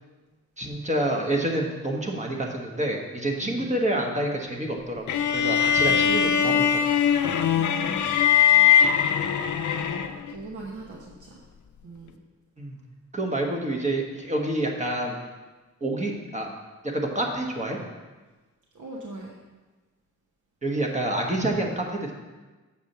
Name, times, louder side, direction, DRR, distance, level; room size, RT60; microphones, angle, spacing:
voice 1, 0.6-6.9 12.6-12.8 13.1-15.2 15.8-16.5 16.9-17.8 20.6-22.1, right 1 dB, 25° right, 1 dB, 1.2 m, -28 dB
voice 2, 3.4-3.8 5.7-6.7 7.5-8.7 9.6-11.4 11.8-12.2 18.7-19.4, right 2 dB, 80° right, -2 dB, 1.1 m, -41 dB
sound 1, 5.1-10.3, left 8 dB, 75° left, 0.6 m, -21 dB
7.2 x 4.8 x 6.7 m, 1.2 s
wide cardioid pair, 120°, 30 cm